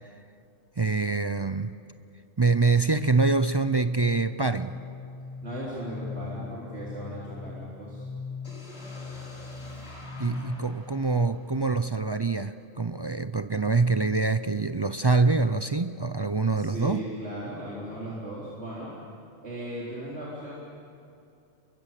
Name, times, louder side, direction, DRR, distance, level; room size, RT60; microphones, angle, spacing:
voice 1, 0.8-1.7 2.4-4.8 10.2-17.0, right 3 dB, 35° right, 11 dB, 0.4 m, -25 dB
sound 1, 4.0-11.6, left 5 dB, 20° left, 0.6 m, -40 dB
voice 2, 5.4-8.1 16.5-18.9 19.4-20.5, right 1 dB, 60° right, -6 dB, 4.1 m, -37 dB
sound 2, 8.4-12.4, left 1 dB, 90° left, 4.6 m, -47 dB
29.0 x 23.5 x 7.6 m, 2.7 s
omnidirectional pair, 1.3 m